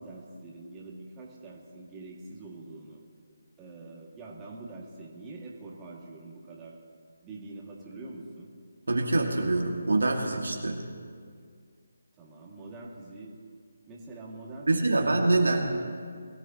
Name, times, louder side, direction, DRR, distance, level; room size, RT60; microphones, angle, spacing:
voice 1, 0.0-3.0 3.6-6.8 7.2-8.5 12.2-13.4 13.9-15.1 15.5-16.0, right 2 dB, 15° right, -3 dB, 2.1 m, -44 dB
voice 2, 8.9-10.8 14.7-15.6, right 2 dB, 75° right, 1 dB, 2.0 m, -25 dB
22.5 x 14.5 x 2.9 m, 2.1 s
figure-of-eight pair, 150°, 0 cm